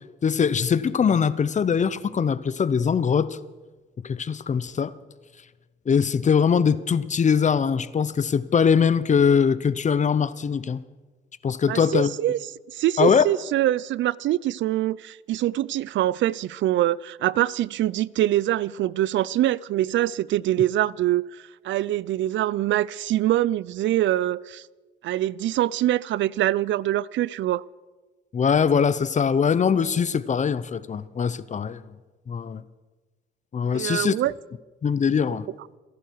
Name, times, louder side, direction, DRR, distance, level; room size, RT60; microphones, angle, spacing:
voice 1, 0.2-3.4 4.0-4.9 5.9-10.8 11.4-12.1 13.0-13.3 28.3-31.8 32.3-32.6 33.5-34.1 34.8-35.5, left 6 dB, 35° left, 0.8 m, -22 dB
voice 2, 11.7-12.4 12.7-24.7 25.0-27.6 33.7-34.3 35.3-35.4, right 13 dB, 70° right, 0.4 m, -24 dB
27.0 x 11.5 x 4.7 m
cardioid pair, 90°, 20 cm